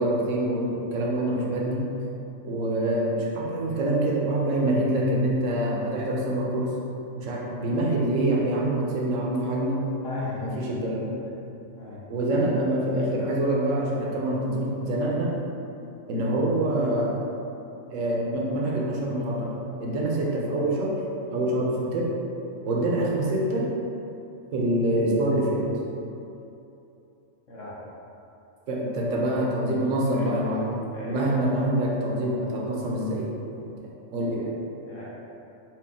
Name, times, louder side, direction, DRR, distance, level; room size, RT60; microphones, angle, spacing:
voice 1, 0.0-1.9 2.4-6.7 7.2-9.9 10.4-11.2 12.1-15.3 16.1-17.3 17.9-21.0 21.3-22.1 22.6-23.7 24.5-25.6 28.7-33.3 34.1-34.5, right 1 dB, 70° right, -3 dB, 1.1 m, -25 dB
voice 2, 10.0-10.4 11.8-12.0 27.5-27.8 30.2-30.3 30.9-31.2 34.9-35.1, left 2 dB, 70° left, -7 dB, 1.2 m, -37 dB
4.5 x 2.5 x 3.5 m, 2.8 s
omnidirectional pair, 1.4 m